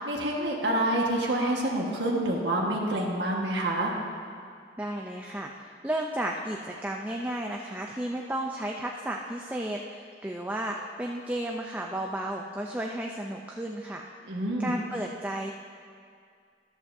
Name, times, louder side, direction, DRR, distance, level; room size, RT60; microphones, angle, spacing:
voice 1, 0.0-3.9 14.3-14.7, right 1 dB, 90° right, -2 dB, 1.5 m, -27 dB
voice 2, 4.8-14.1 14.6-15.5, right 1 dB, 10° right, 0 dB, 0.4 m, -33 dB
14.0 x 12.0 x 2.7 m, 2.2 s
head